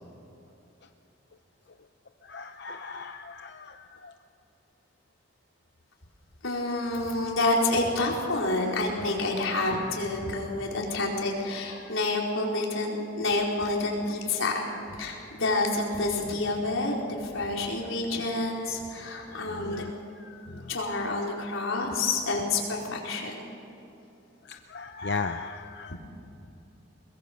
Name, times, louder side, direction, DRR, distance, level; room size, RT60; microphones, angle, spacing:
voice 1, 2.2-4.1 11.8-12.0 14.7-14.8 19.1-19.9 20.2-20.7 24.4-26.0, left 4 dB, 55° left, 6 dB, 0.7 m, -37 dB
voice 2, 6.4-19.8 20.7-23.6 25.9-26.0, left 2 dB, 85° left, -2 dB, 4.6 m, -28 dB
22.0 x 21.5 x 6.9 m, 3.0 s
head